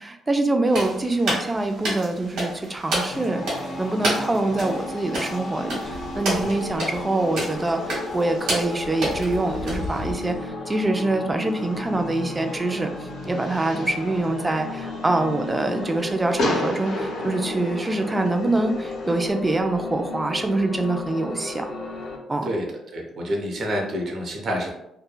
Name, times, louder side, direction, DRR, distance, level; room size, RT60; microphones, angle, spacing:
voice 1, 0.0-3.4 3.8-12.9 13.3-21.7 22.3-22.5, right 2 dB, 20° right, 6 dB, 0.4 m, -25 dB
sound 1, 0.7-10.4, right 1 dB, 80° right, 1.4 m, -30 dB
sound 2, 3.1-22.2, left 2 dB, 50° left, 0.6 m, -34 dB
Fireworks, 11.4-19.3, left 1 dB, 75° left, 0.9 m, -34 dB
voice 2, 22.9-24.7, equal, 55° right, 1 dB, 0.7 m, -28 dB
3.0 x 2.2 x 2.3 m, 0.82 s
cardioid pair, 90°, 0 cm